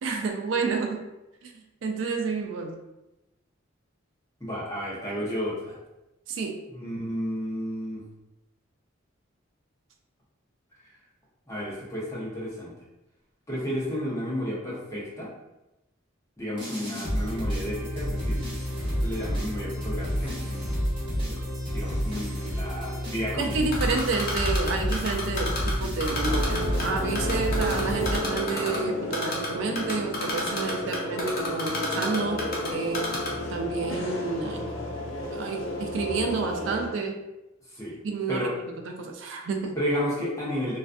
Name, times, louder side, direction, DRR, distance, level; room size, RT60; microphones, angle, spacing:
voice 1, 0.0-1.0 1.4-1.5 1.8-2.8 6.3-6.6 23.4-32.4 32.7-33.1 33.5-34.6 35.3-37.2 38.0-38.5 38.9-39.8, right 4 dB, 70° right, 3 dB, 0.3 m, -29 dB
voice 2, 4.4-5.8 6.7-8.0 11.5-12.7 13.5-15.3 16.4-18.4 18.8-20.8 21.1-21.4 21.7-23.7 27.2-27.6 37.7-38.0 38.3-38.5 39.7-40.8, equal, 15° left, -7 dB, 0.7 m, -32 dB
sound 1, 16.6-28.7, equal, 25° right, 1.0 m, -30 dB
Typing, 23.7-25.7 26.0-26.8 27.2-28.8 29.1-29.5 29.8-32.7 32.9-33.3, left 3 dB, 50° left, 0.6 m, -30 dB
sound 2, 26.2-36.9, equal, 90° left, 0.5 m, -32 dB
2.4 x 2.2 x 2.4 m, 0.97 s
head